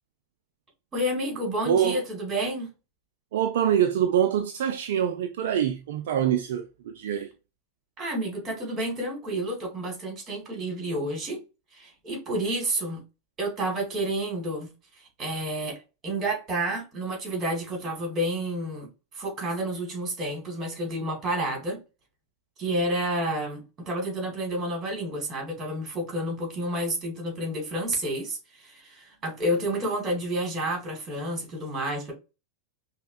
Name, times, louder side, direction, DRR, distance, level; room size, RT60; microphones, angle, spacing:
voice 1, 0.9-2.7 8.0-11.4 11.8-13.0 13.4-14.7 15.2-15.8 16.0-18.9 19.1-21.8 22.6-32.1, right 1 dB, 25° right, 1.8 m, -30 dB
voice 2, 1.6-2.0 3.3-7.3, right 9 dB, 55° right, 0.3 m, -25 dB
5.3 x 2.1 x 2.5 m
figure-of-eight pair, 90°, 0 cm